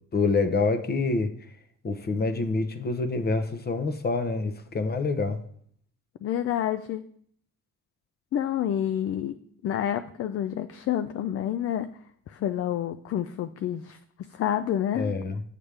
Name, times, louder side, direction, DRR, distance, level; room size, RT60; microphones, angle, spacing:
voice 1, 0.1-1.3 1.8-5.4 14.9-15.4, left 3 dB, 35° left, 0.8 m, -26 dB
voice 2, 6.2-7.0 8.3-9.3 9.6-12.0 12.3-14.0 14.3-15.2, left 10 dB, 50° left, 0.4 m, -28 dB
7.1 x 6.6 x 3.4 m
cardioid pair, 90°, 30 cm